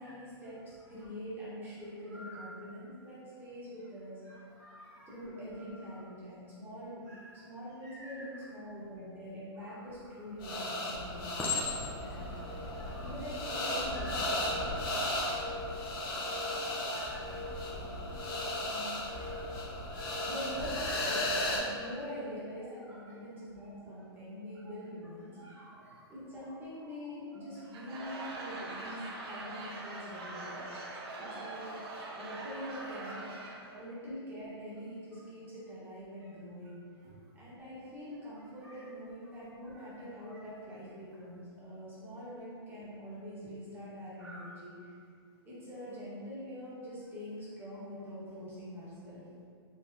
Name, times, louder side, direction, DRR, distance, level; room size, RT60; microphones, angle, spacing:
voice 1, 0.0-4.2 5.1-7.1 7.3-11.5 12.0-12.6 13.0-14.4 17.7-18.1 18.4-19.0 20.1-25.6 26.1-30.6 31.2-31.7 32.1-33.2 33.7-36.8 37.3-44.9 45.4-49.2, equal, 15° right, -9 dB, 1.1 m, -44 dB
voice 2, 2.1-2.5 4.3-5.1 5.6-5.8 7.1-7.4 7.8-8.3 9.6-9.7 11.4-13.1 13.9-14.2 14.5-17.6 18.3-18.5 19.1-19.7 19.9-20.3 20.7-20.9 22.6-22.8 24.6-24.7 25.3-26.1 26.8-26.9 28.5-28.7 29.1-29.2 29.8-30.7 31.1-31.2 31.6-32.1 32.9-33.1 33.6-33.7 37.0-37.1 38.6-38.9 39.6-39.9 40.2-40.4 44.2-44.5, equal, 80° right, -11 dB, 1.2 m, -53 dB
Chink clink, 9.9-10.4 11.4-12.2 12.9-13.2, left 5 dB, 10° left, 0.4 m, -36 dB
sound 1, 10.4-21.6, left 1 dB, 55° left, 0.9 m, -35 dB
Laughter / Crowd, 27.6-33.8, right 2 dB, 65° right, 0.7 m, -43 dB
4.0 x 2.9 x 2.6 m, 2.2 s
hypercardioid pair, 140°, 14 cm